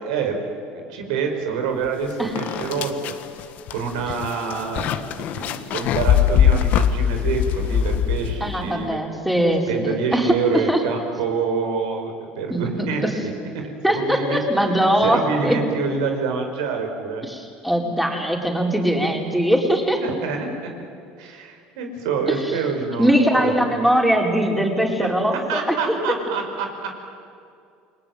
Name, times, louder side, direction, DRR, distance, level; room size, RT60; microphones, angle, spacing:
voice 1, 0.0-0.4 0.7-9.0 9.7-14.4 15.0-17.3 20.0-20.5 21.2-23.8 25.0-25.2 25.5-26.7, right 5 dB, 90° right, 4 dB, 5.2 m, -27 dB
sound 1, 1.9-2.0 2.4-8.7, left 9 dB, 55° left, 1.5 m, -21 dB
voice 2, 8.4-10.8 12.5-13.1 13.8-15.6 17.2-20.0 23.0-26.0, equal, ahead, 1 dB, 4.7 m, -21 dB
29.5 x 21.5 x 9.3 m, 2.4 s
supercardioid pair, 115°, 3 cm